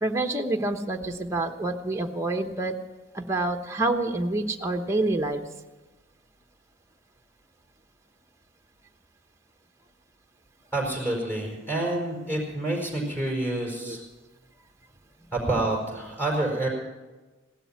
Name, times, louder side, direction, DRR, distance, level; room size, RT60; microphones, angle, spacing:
voice 1, 0.0-2.8 3.1-5.5 13.8-14.0, right 2 dB, 15° right, 4 dB, 1.0 m, -27 dB
voice 2, 10.7-14.0 15.3-16.7, right 2 dB, 10° left, -2 dB, 4.7 m, -28 dB
17.0 x 12.0 x 5.8 m, 1.2 s
head